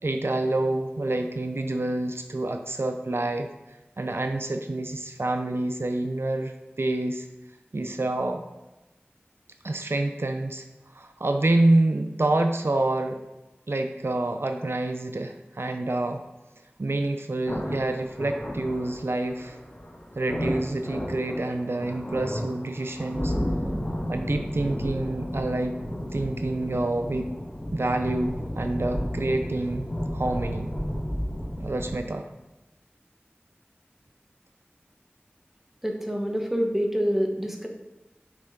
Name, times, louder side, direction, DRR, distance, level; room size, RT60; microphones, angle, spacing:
voice 1, 0.0-3.5 4.0-7.3 7.7-8.4 9.6-10.6 10.9-13.2 13.7-16.2 16.8-19.6 20.2-23.3 24.1-25.8 26.1-27.3 27.7-29.9 30.1-30.7 31.6-32.2, right 2 dB, 75° right, 6 dB, 0.5 m, -27 dB
sound 1, 17.5-32.0, equal, 35° left, 1.8 m, -32 dB
voice 2, 35.8-37.7, equal, 5° right, 1 dB, 1.2 m, -26 dB
6.4 x 6.0 x 3.7 m, 1.0 s
wide cardioid pair, 45°, 4 cm